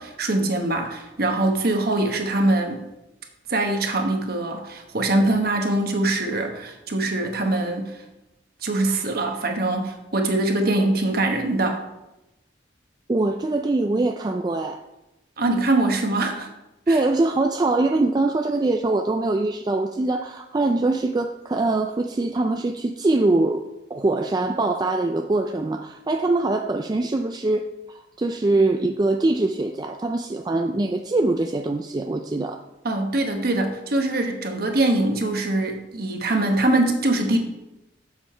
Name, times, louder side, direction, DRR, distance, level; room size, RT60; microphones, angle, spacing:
voice 1, 0.0-2.8 3.5-8.0 8.6-11.8 15.4-16.5 16.9-17.0 32.8-37.4, right 2 dB, 55° right, 4 dB, 1.2 m, -23 dB
voice 2, 13.1-14.8 16.9-23.6 23.9-32.6, right 2 dB, 20° right, 5 dB, 0.3 m, -23 dB
7.4 x 7.1 x 4.4 m, 0.93 s
head